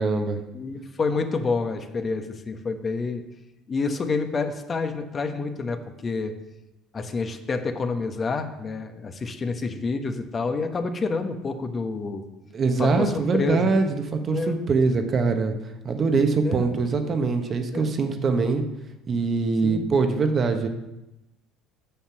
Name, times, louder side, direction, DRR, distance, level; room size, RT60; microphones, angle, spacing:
voice 1, 0.0-0.4 12.5-15.5 15.8-18.6 19.1-20.7, right 4 dB, 40° right, 6 dB, 1.2 m, -23 dB
voice 2, 0.5-3.2 3.7-6.3 6.9-12.2 12.8-13.7 14.3-14.6 16.4-16.7 17.7-17.9 19.6-19.9, left 4 dB, 35° left, 7 dB, 1.1 m, -28 dB
7.2 x 7.0 x 6.0 m, 0.96 s
hypercardioid pair, 65°, 0 cm